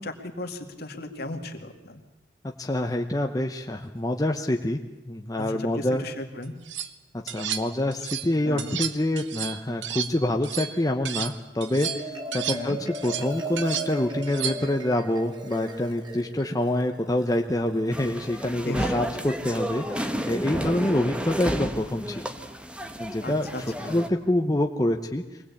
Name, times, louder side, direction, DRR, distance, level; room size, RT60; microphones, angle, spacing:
voice 1, 0.0-2.0 5.4-6.5 8.4-8.7 12.5-12.8 18.6-19.2 20.5-20.8 23.2-24.0, left 1 dB, 55° left, 4 dB, 2.3 m, -36 dB
voice 2, 2.4-4.8 5.1-6.0 7.2-12.8 13.0-22.2 23.0-23.5 23.9-25.2, left 1 dB, 20° left, 3 dB, 0.9 m, -26 dB
sound 1, 6.4-6.9 7.3-8.3 8.6-11.3 11.6-14.8, right 9 dB, 75° right, 1.1 m, -33 dB
Marimba xylophone, 11.5-18.1, right 1 dB, 25° right, 2.6 m, -37 dB
sound 2, 17.9-24.1, equal, 5° right, 1.2 m, -31 dB
24.0 x 19.0 x 8.5 m, 1.1 s
head